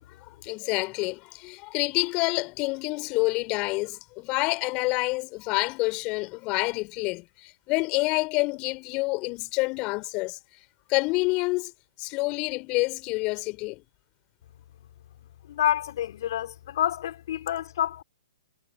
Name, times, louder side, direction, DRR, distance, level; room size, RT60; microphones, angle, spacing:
voice 1, 0.4-10.4 10.9-11.7 12.0-13.8, left 25 dB, 30° left, 2.9 m, -28 dB
voice 2, 15.5-18.0, left 11 dB, 55° left, 3.8 m, -28 dB
figure-of-eight pair, 120°, 3 cm